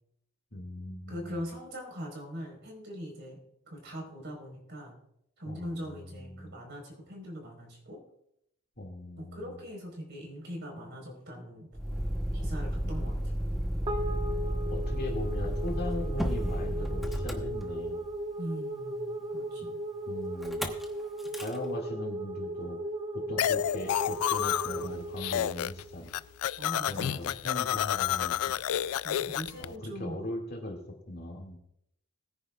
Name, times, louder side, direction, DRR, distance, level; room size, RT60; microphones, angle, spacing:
voice 1, 0.5-1.4 5.5-6.6 8.8-9.6 12.3-12.5 12.8-13.2 14.7-18.0 20.1-20.7 21.3-22.8 23.1-26.1 26.9-28.6 29.6-30.8 31.1-31.6, left 1 dB, 45° left, 0 dB, 2.2 m, -39 dB
voice 2, 1.1-3.4 3.7-5.0 5.4-8.0 9.2-11.7 12.3-13.2 18.4-19.8 26.6-27.5 29.0-30.2, equal, 50° right, 1 dB, 4.5 m, -41 dB
Motor vehicle (road), 11.7-18.2 20.4-20.8 21.2-21.6, equal, ahead, 0.9 m, -32 dB
sound 1, 13.9-26.4, right 1 dB, 25° right, 1.3 m, -37 dB
sound 2, 23.4-24.9 25.2-25.8 26.1-29.6, left 11 dB, 85° left, 0.3 m, -30 dB
20.5 x 9.9 x 2.4 m, 0.76 s
head